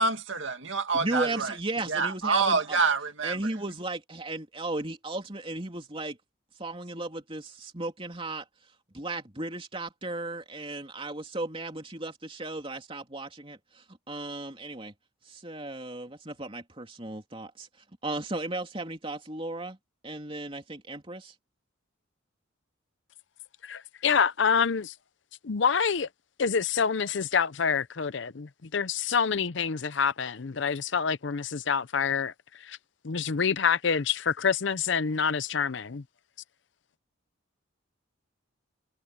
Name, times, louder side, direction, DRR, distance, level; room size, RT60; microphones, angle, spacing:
voice 1, 0.0-1.5 1.9-3.5, right 4 dB, 65° right, 2.3 m, -27 dB
voice 2, 0.9-2.8 3.2-6.2 6.6-8.4 8.9-14.9 15.2-17.7 18.0-19.8 20.0-21.3, right 2 dB, 25° right, 3.1 m, -35 dB
voice 3, 23.6-24.9 25.4-26.1 26.4-32.3 32.6-32.8 33.0-36.0, left 6 dB, 60° left, 0.6 m, -27 dB
head